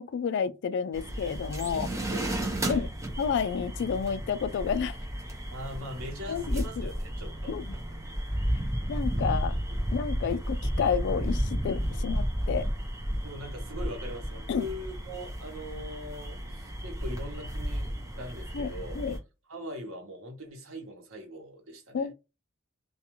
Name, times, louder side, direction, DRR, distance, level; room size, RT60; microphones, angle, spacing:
voice 1, 0.0-1.9 2.7-2.9 3.2-5.0 6.3-6.9 7.5-7.6 8.9-9.6 9.9-12.7 14.5-14.7 18.5-19.2 21.9-22.1, left 6 dB, 60° left, 0.3 m, -30 dB
sound 1, 0.9-19.2, equal, 15° right, 0.7 m, -33 dB
voice 2, 1.6-2.3 2.6-2.9 5.5-7.6 13.2-19.0 19.5-22.1, equal, 80° right, 0.9 m, -41 dB
2.3 x 2.3 x 2.9 m
head